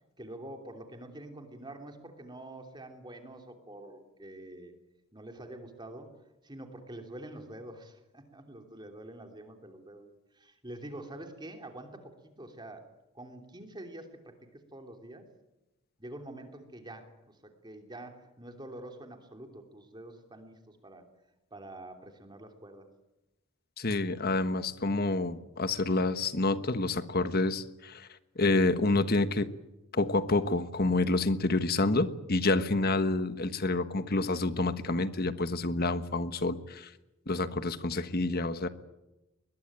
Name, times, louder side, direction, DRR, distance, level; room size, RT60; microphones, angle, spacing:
voice 1, 0.2-4.7 5.1-6.1 6.4-12.9 13.1-15.2 16.0-21.0 21.5-22.9, right 1 dB, 20° right, 5 dB, 3.1 m, -46 dB
voice 2, 23.8-28.1 28.3-29.5 29.9-36.9 37.3-38.7, left 2 dB, 45° left, 11 dB, 1.4 m, -28 dB
22.0 x 21.0 x 9.0 m, 0.98 s
head